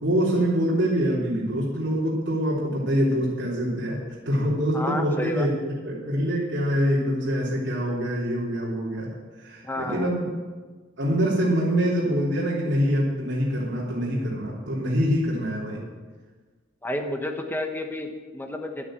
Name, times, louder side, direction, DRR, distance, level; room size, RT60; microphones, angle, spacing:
voice 1, 0.0-4.0 4.2-9.1 9.4-10.3 11.0-15.8, equal, 65° right, -7 dB, 3.3 m, -25 dB
voice 2, 4.7-5.5 9.6-10.1 16.8-18.8, left 1 dB, 10° left, 4 dB, 1.1 m, -30 dB
11.0 x 9.9 x 7.5 m, 1.4 s
head